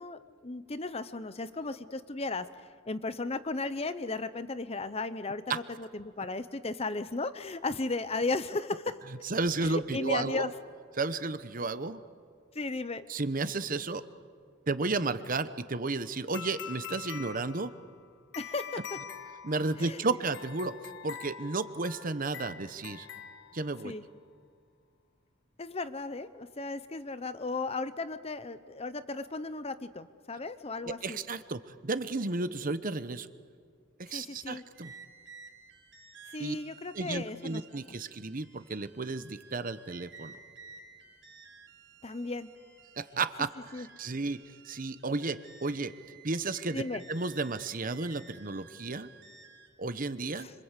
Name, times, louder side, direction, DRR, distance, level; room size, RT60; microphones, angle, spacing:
voice 1, 0.0-2.5 2.9-9.0 9.6-10.5 12.5-13.0 18.4-19.0 19.8-20.0 23.8-24.0 25.6-31.2 34.1-34.6 36.3-37.6 42.0-42.5 43.7-43.9 46.7-47.0 50.3-50.5, left 3 dB, 30° left, 13 dB, 0.9 m, -35 dB
voice 2, 9.2-10.5 11.0-12.0 13.1-14.1 14.7-17.7 19.4-20.8 21.0-23.1 23.5-23.9 30.8-33.3 34.0-34.9 36.4-36.6 36.9-40.3 43.0-45.9 46.2-46.8 47.1-49.1 49.8-50.5, right 3 dB, 45° right, 12 dB, 1.0 m, -33 dB
sound 1, 16.3-24.0, left 8 dB, 60° left, 1.1 m, -45 dB
sound 2, 34.7-49.7, right 4 dB, 65° right, 4.5 m, -54 dB
26.0 x 26.0 x 8.3 m, 2.1 s
head